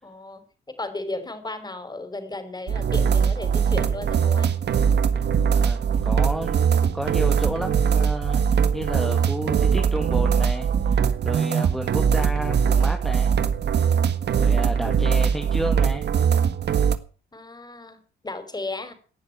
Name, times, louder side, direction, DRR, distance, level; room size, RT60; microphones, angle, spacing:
voice 1, 0.0-4.5 14.7-15.0 17.3-18.9, left 2 dB, 20° left, 9 dB, 5.4 m, -35 dB
sound 1, 2.7-17.0, right 7 dB, 60° right, 1.6 m, -21 dB
voice 2, 5.6-13.3 14.4-16.0, equal, ahead, 4 dB, 2.1 m, -32 dB
17.5 x 10.0 x 5.8 m, 0.38 s
cardioid pair, 90°, 20 cm